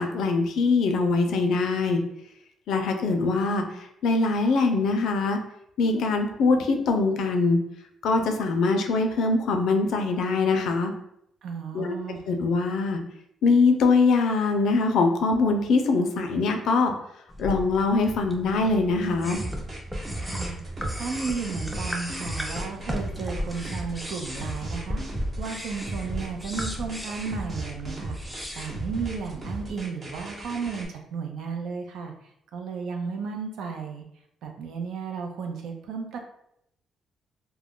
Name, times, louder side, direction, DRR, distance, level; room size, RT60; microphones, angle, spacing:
voice 1, 0.0-2.0 2.7-3.6 4.0-5.4 5.8-7.6 8.0-10.9 11.7-11.9 12.3-13.0 13.4-16.9 17.4-19.4, left 3 dB, 75° left, 5 dB, 0.4 m, -23 dB
voice 2, 11.4-12.2 20.2-32.1 32.5-34.0 34.4-36.2, right 5 dB, 75° right, 3 dB, 0.5 m, -34 dB
sound 1, 17.3-29.3, equal, ahead, 0.4 m, -36 dB
sound 2, 19.3-30.9, right 1 dB, 40° right, 0.9 m, -36 dB
2.3 x 2.1 x 3.5 m, 0.75 s
cardioid pair, 90°, 0 cm